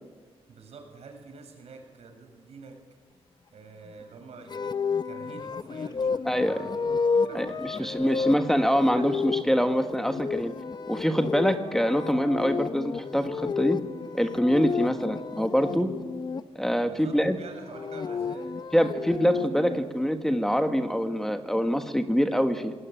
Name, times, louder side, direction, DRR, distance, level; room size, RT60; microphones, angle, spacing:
voice 1, 0.5-2.8 3.5-6.9 7.1-8.3 8.8-9.1 16.9-18.5, right 4 dB, 80° right, 4 dB, 6.5 m, -47 dB
sound 1, 4.5-16.4 17.5-19.8, left 5 dB, 40° left, 0.8 m, -31 dB
voice 2, 6.2-6.6 7.3-10.5 10.9-13.8 14.1-15.9 16.5-17.4 18.7-22.7, equal, 5° left, 7 dB, 1.5 m, -25 dB
26.0 x 19.5 x 9.1 m, 1.4 s
wide cardioid pair, 120°, 11 cm